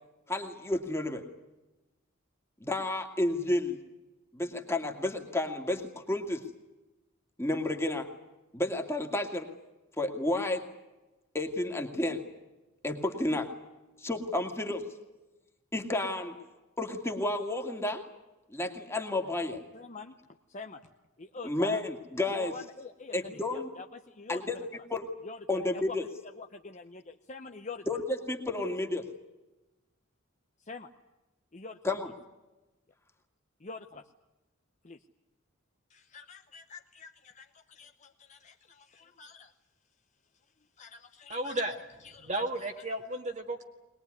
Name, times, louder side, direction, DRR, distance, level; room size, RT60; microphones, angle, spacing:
voice 1, 0.3-1.2 2.6-3.8 4.3-6.4 7.4-8.1 8.5-9.5 10.0-10.6 11.3-12.2 12.8-13.5 14.0-14.8 15.7-16.4 16.8-18.0 18.5-19.6 21.4-22.5 23.1-23.7 24.3-24.6 24.9-25.1 25.5-26.0 27.9-29.0 31.8-32.1, left 2 dB, 10° left, 3 dB, 2.3 m, -31 dB
voice 2, 19.7-20.1 20.5-20.9 21.2-21.8 22.3-24.8 25.2-26.1 26.4-27.9 28.6-28.7 30.6-30.9 31.5-32.1 33.6-34.1 34.8-35.0 35.9-39.5 40.8-41.6 42.0-42.4, left 4 dB, 35° left, 5 dB, 0.9 m, -46 dB
voice 3, 41.3-41.8 42.2-43.6, right 1 dB, 35° right, 3 dB, 1.9 m, -33 dB
22.0 x 21.0 x 9.6 m, 1.1 s
head